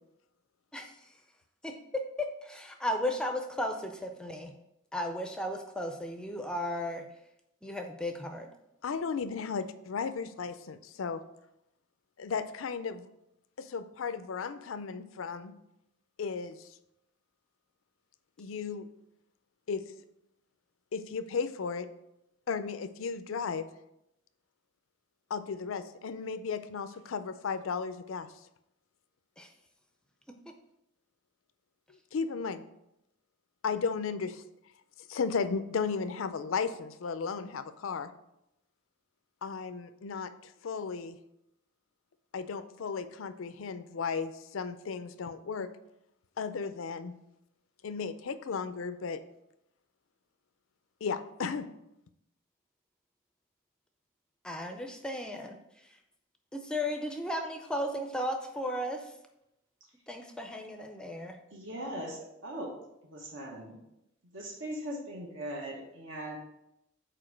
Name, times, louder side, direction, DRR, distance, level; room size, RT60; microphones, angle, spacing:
voice 1, 1.6-4.5 4.9-7.1 7.6-8.5 29.4-29.5 30.3-30.4 54.4-55.6 56.5-59.1 60.1-61.4, left 1 dB, 5° left, 5 dB, 0.4 m, -35 dB
voice 2, 8.8-11.2 12.2-13.1 13.6-15.5 16.2-16.7 18.4-18.9 19.7-19.8 20.9-21.9 22.5-23.7 25.3-28.3 31.9-32.6 33.6-34.4 35.1-38.1 39.4-41.2 42.3-45.7 46.4-47.1 47.8-49.2 51.0-51.7, left 5 dB, 80° left, 11 dB, 0.4 m, -35 dB
voice 3, 61.5-62.7 63.0-63.8 64.3-66.4, right 1 dB, 70° right, -1 dB, 1.2 m, -39 dB
5.0 x 4.4 x 5.8 m, 0.84 s
head